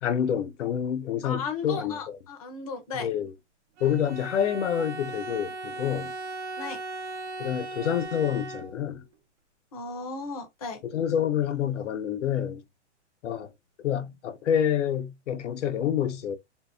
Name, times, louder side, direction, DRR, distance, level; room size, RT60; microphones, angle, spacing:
voice 1, 0.0-2.0 2.9-3.3 3.8-6.1 7.4-9.0 10.8-12.6 13.2-13.5 13.8-16.4, left 9 dB, 80° left, 0.6 m, -27 dB
voice 2, 1.2-3.1 6.6-6.8 9.7-10.8, left 4 dB, 30° left, 0.5 m, -35 dB
Bowed string instrument, 3.8-9.0, right 3 dB, 70° right, 0.7 m, -38 dB
2.7 x 2.0 x 2.4 m
hypercardioid pair, 175°, 36 cm